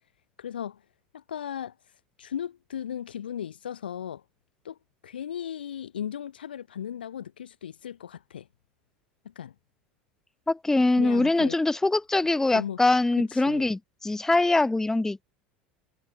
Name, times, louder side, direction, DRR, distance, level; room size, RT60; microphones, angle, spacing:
voice 1, 0.4-0.8 1.1-1.7 2.2-4.2 4.6-4.8 5.0-8.5 9.2-9.5 11.0-11.6 12.5-12.8 13.2-13.7, left 9 dB, 90° left, 2.4 m, -36 dB
voice 2, 10.5-15.2, left 2 dB, 10° left, 0.6 m, -23 dB
hypercardioid pair, 80°, 5 cm